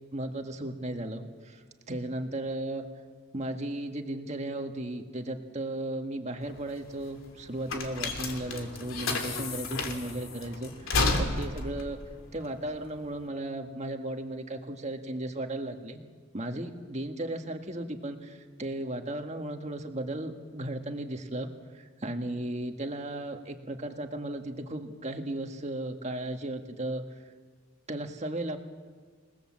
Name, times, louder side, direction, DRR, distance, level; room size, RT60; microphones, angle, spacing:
voice 1, 0.1-2.8 3.3-12.0 12.3-16.0 16.3-21.5 21.7-27.2 27.9-28.6, right 1 dB, 35° right, 5 dB, 1.7 m, -35 dB
sound 1, 6.4-13.2, left 3 dB, 80° left, 2.9 m, -32 dB
28.0 x 19.0 x 7.6 m, 1.5 s
head